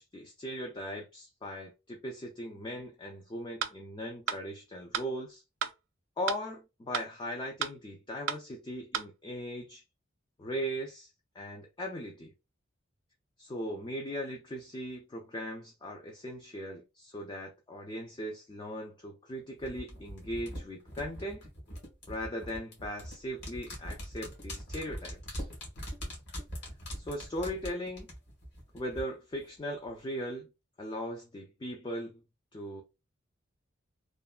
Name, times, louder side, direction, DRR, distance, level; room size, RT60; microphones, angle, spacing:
voice 1, 0.0-5.4 6.2-9.8 10.4-11.1 11.4-12.3 13.4-21.5 22.1-25.5 26.9-28.1 28.7-30.5 30.8-32.2 32.5-32.8, equal, 25° left, 0.4 m, -39 dB
sound 1, 3.6-3.7 4.3-4.4 4.9-5.1 5.6-5.7 6.3-6.4 6.9-7.1 7.6-7.7 8.3-8.4 8.9-9.1, right 8 dB, 70° right, 0.3 m, -32 dB
sound 2, 19.6-29.0 29.3-29.4, equal, 60° left, 1.4 m, -42 dB
3.1 x 2.1 x 2.3 m
head